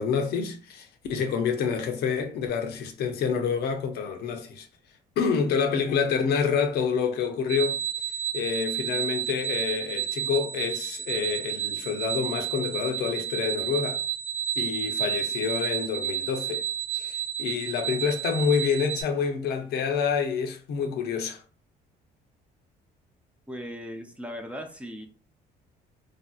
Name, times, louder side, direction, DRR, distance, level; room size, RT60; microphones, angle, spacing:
voice 1, 0.0-4.7 5.2-7.8 8.3-14.0 14.6-16.6 16.9-21.4, left 6 dB, 70° left, 0.7 m, -27 dB
sound 1, 7.5-19.0, right 10 dB, 85° right, 0.6 m, -31 dB
voice 2, 23.5-25.1, equal, 5° right, 0.5 m, -38 dB
3.3 x 2.7 x 2.3 m
cardioid pair, 110°, 17 cm